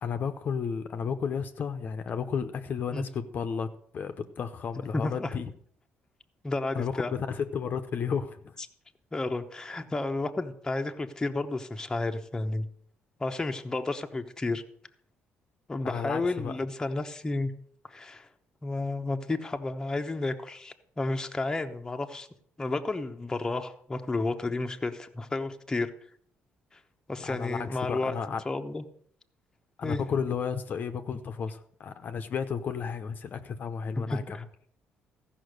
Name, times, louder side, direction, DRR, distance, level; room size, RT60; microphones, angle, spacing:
voice 1, 0.0-5.5 6.7-8.5 15.8-16.5 27.2-28.4 29.8-34.4, left 6 dB, 50° left, 8 dB, 0.7 m, -33 dB
voice 2, 4.9-5.3 6.4-7.1 9.1-12.7 13.2-14.6 15.7-17.5 17.9-18.3 18.6-22.3 22.6-25.9 26.7-26.8 27.1-28.8 29.8-30.1 34.0-34.4, left 2 dB, 15° left, 5 dB, 0.8 m, -32 dB
14.5 x 5.7 x 6.5 m, 0.64 s
cardioid pair, 115°, 4 cm